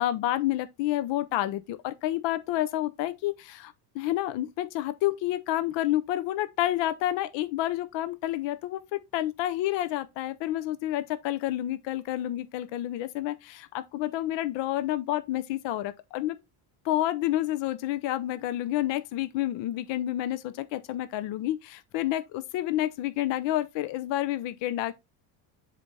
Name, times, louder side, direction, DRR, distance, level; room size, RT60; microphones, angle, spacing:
voice 1, 0.0-16.4 16.8-24.9, left 14 dB, 65° left, 0.8 m, -29 dB
7.2 x 3.4 x 4.1 m
supercardioid pair, 100°, 46 cm